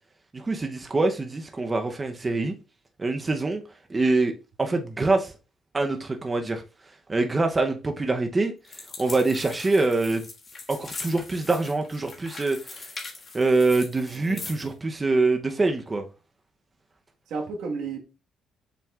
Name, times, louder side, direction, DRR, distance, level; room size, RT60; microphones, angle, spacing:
voice 1, 0.3-2.5 3.0-3.6 3.9-4.3 4.6-5.3 5.7-6.6 7.1-8.5 9.0-10.2 10.7-12.9 13.3-16.0, right 3 dB, 20° right, 0.7 m, -24 dB
sound 1, 8.6-14.7, left 3 dB, 35° left, 1.7 m, -41 dB
voice 2, 14.1-14.6 17.3-18.0, right 4 dB, 80° right, 1.5 m, -33 dB
6.9 x 5.9 x 2.4 m
cardioid pair, 110°, 0 cm